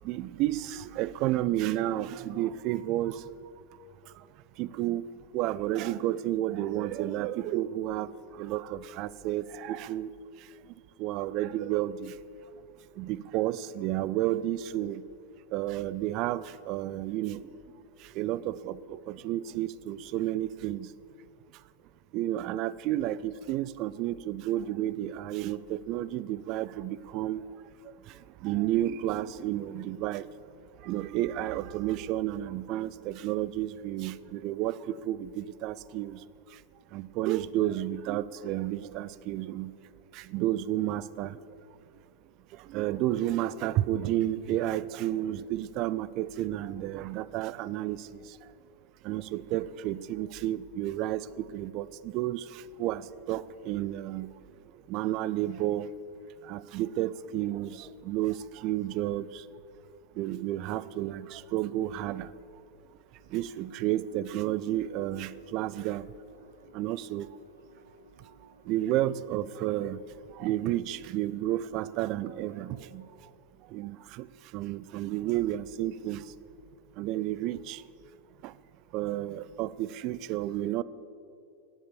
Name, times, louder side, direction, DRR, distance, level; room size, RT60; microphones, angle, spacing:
voice 1, 0.0-3.3 4.6-5.1 5.3-10.1 11.0-12.1 13.0-15.0 15.5-17.5 18.0-20.9 22.1-27.4 27.8-30.3 30.8-36.2 36.9-39.7 40.1-41.4 42.5-48.4 49.0-54.3 54.9-55.9 56.4-59.4 60.2-62.3 63.3-66.1 66.7-67.3 68.7-73.0 73.7-74.3 74.5-76.3 77.0-77.8 78.4-78.5 78.9-80.8, right 13 dB, 40° right, 19 dB, 0.4 m, -31 dB
sound 1, 63.2-73.1, right 1 dB, 75° right, 1.4 m, -58 dB
17.0 x 9.5 x 6.9 m, 2.6 s
figure-of-eight pair, 90°, 0 cm